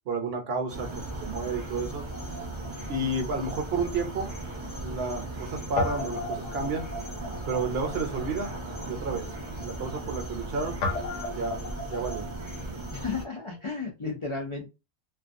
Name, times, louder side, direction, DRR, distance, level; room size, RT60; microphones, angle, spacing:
voice 1, 0.1-2.0 2.9-4.3 4.8-6.9 7.5-8.5 8.9-9.3 9.6-10.8 11.3-11.6 11.9-12.3, right 3 dB, 60° right, 0.9 m, -31 dB
sound 1, 0.7-13.3, right 1 dB, 30° right, 0.6 m, -37 dB
Guitar, 2.1-4.5 4.8-4.9 5.8-13.6, left 2 dB, 80° left, 0.9 m, -38 dB
voice 2, 12.9-14.7, left 4 dB, 55° left, 0.3 m, -33 dB
2.4 x 2.3 x 2.5 m
omnidirectional pair, 1.2 m